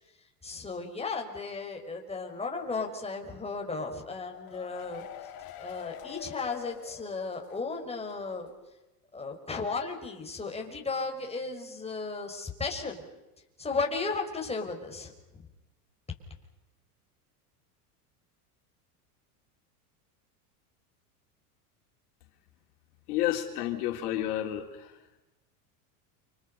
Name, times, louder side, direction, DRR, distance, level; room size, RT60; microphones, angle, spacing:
voice 1, 0.4-5.0 5.6-8.5 9.1-13.0 13.6-15.4, left 4 dB, 15° left, 2 dB, 5.7 m, -35 dB
sound 1, 4.1-7.7 8.0-8.1 8.5-8.6, left 10 dB, 50° left, 4.8 m, -45 dB
voice 2, 23.1-25.0, left 12 dB, 75° left, 3 dB, 3.8 m, -31 dB
30.0 x 26.5 x 5.7 m, 1.0 s
supercardioid pair, 105°, 46 cm